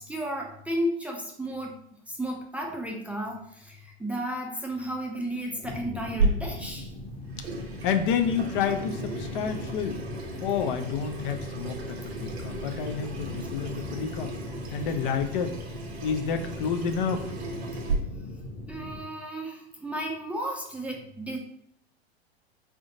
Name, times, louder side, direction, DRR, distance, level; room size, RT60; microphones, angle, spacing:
voice 1, 0.0-1.8 2.1-6.9 18.7-21.4, equal, 5° right, 0 dB, 0.5 m, -33 dB
sound 1, 5.6-19.0, left 2 dB, 20° left, 0.9 m, -39 dB
Water tap faucet / Sink (filling or washing), 6.2-17.9, right 3 dB, 80° right, 1.0 m, -35 dB
voice 2, 7.8-10.0 10.4-14.3 14.7-15.5 16.0-17.3, left 7 dB, 55° left, 6 dB, 0.6 m, -29 dB
3.8 x 3.5 x 2.6 m, 0.67 s
hypercardioid pair, 105°, 31 cm